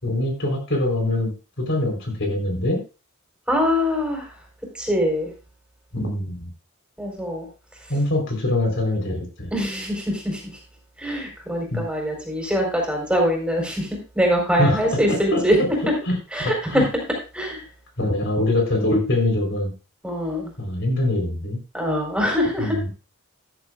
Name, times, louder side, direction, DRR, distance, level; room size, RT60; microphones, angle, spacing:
voice 1, 0.0-2.8 5.9-6.5 7.9-9.5 11.7-11.8 14.6-14.8 15.3-15.4 16.1-16.8 18.0-19.7 20.6-21.6 22.6-22.9, left 1 dB, 60° left, 2 dB, 3.9 m, -23 dB
voice 2, 3.5-4.3 4.7-5.3 7.0-7.5 7.8-7.9 9.5-10.4 11.0-15.9 16.3-17.7 20.0-20.5 21.7-22.8, equal, 5° right, 0 dB, 4.2 m, -23 dB
13.5 x 12.0 x 2.4 m, 0.33 s
head